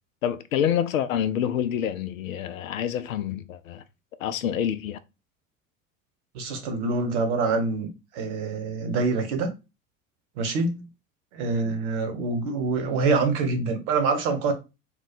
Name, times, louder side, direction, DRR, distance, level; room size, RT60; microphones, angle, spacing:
voice 1, 0.2-3.8 4.2-5.0, left 9 dB, 70° left, 0.5 m, -27 dB
voice 2, 6.3-7.9 8.1-9.5 10.4-10.8 11.3-14.5, right 3 dB, 55° right, 1.0 m, -25 dB
2.9 x 2.2 x 4.0 m
figure-of-eight pair, 70°, 42 cm